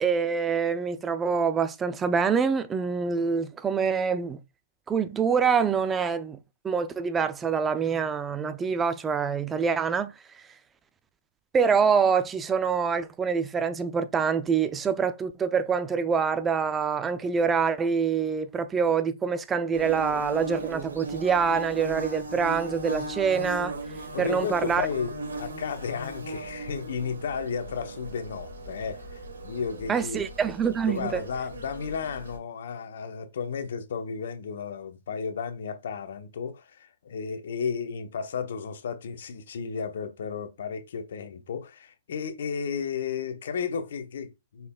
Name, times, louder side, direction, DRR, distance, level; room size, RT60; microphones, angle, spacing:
voice 1, 0.0-4.4 4.9-6.4 6.6-10.1 11.5-23.7 24.2-24.9 29.9-31.2, right 6 dB, 15° right, 0.4 m, -25 dB
Bird / Buzz, 19.7-32.4, right 1 dB, 80° right, 1.9 m, -38 dB
voice 2, 24.1-30.2 30.9-44.7, left 6 dB, 65° left, 0.8 m, -33 dB
5.5 x 4.1 x 2.2 m
hypercardioid pair, 125°, 0 cm